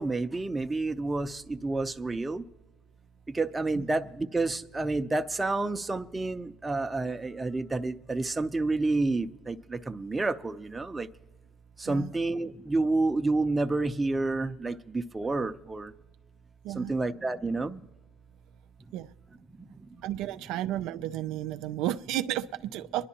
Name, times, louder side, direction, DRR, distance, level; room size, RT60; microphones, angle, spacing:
voice 1, 0.0-2.4 3.3-11.1 11.8-15.9 16.8-17.8, right 2 dB, 15° right, 0.6 m, -29 dB
voice 2, 16.6-17.0 18.9-19.1 20.0-23.1, right 13 dB, 75° right, 0.3 m, -33 dB
25.0 x 11.0 x 2.9 m
supercardioid pair, 90°, 0 cm